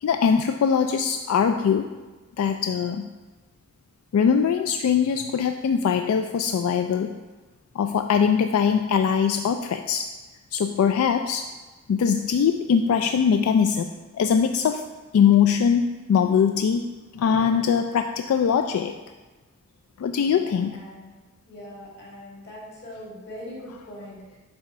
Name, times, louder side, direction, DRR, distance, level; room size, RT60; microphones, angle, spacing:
voice 1, 0.0-1.9 2.4-3.1 4.1-7.1 7.8-10.1 10.5-11.5 11.9-14.9 15.1-16.8 17.1-18.9 20.0-20.7, left 7 dB, 90° left, 8 dB, 0.3 m, -22 dB
voice 2, 20.3-21.2 21.5-24.4, left 1 dB, 55° left, -5 dB, 2.1 m, -41 dB
7.6 x 3.5 x 4.2 m, 1.2 s
head